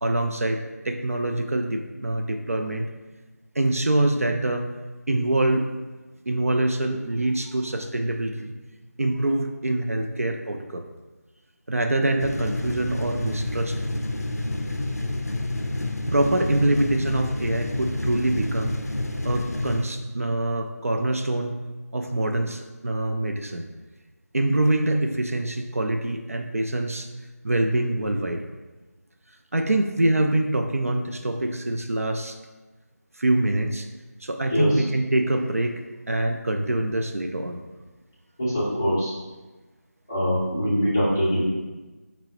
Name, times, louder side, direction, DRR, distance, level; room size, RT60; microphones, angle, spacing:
voice 1, 0.0-2.9 3.6-4.7 5.1-5.7 6.3-8.5 9.0-10.9 11.7-13.8 16.1-18.8 19.2-21.6 21.9-23.7 24.3-27.1 27.4-28.4 29.5-32.4 33.2-33.9 34.2-35.8 36.1-37.6, right 1 dB, 55° right, 4 dB, 0.3 m, -25 dB
sound 1, 12.2-19.9, left 2 dB, 65° left, 0.4 m, -29 dB
voice 2, 38.4-39.1 40.1-41.5, equal, 10° left, -10 dB, 0.5 m, -23 dB
4.4 x 2.0 x 4.1 m, 1.2 s
figure-of-eight pair, 170°, 9 cm